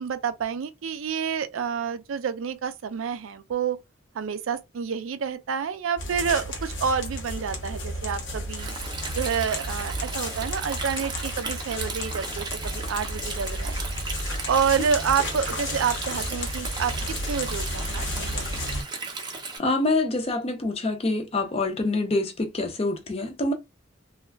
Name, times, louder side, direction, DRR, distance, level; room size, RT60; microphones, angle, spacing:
voice 1, 0.0-3.8 4.1-8.7 9.1-13.8 14.5-16.9 17.3-18.4, right 7 dB, 90° right, 0.4 m, -28 dB
sound 1, 6.0-18.8, left 1 dB, 70° left, 0.9 m, -32 dB
Stream, 8.6-19.6, right 4 dB, 20° right, 0.5 m, -36 dB
voice 2, 19.6-23.5, left 2 dB, 30° left, 0.5 m, -26 dB
2.3 x 2.1 x 3.3 m
head